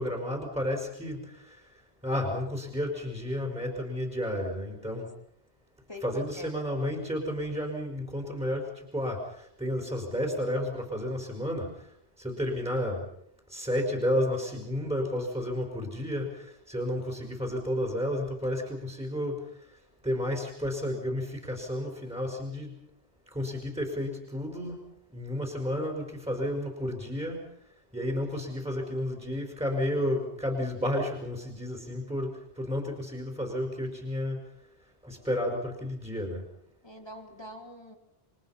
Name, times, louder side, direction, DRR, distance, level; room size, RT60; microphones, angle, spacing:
voice 1, 0.0-1.6 2.0-5.1 6.0-11.7 12.2-13.1 13.5-19.4 20.0-22.7 23.3-27.4 27.9-34.4 35.0-36.4, left 1 dB, 5° right, 1 dB, 4.8 m, -32 dB
voice 2, 5.9-6.5 36.8-38.0, left 1 dB, 25° left, 3 dB, 3.1 m, -44 dB
29.0 x 24.5 x 5.8 m, 0.73 s
omnidirectional pair, 1.0 m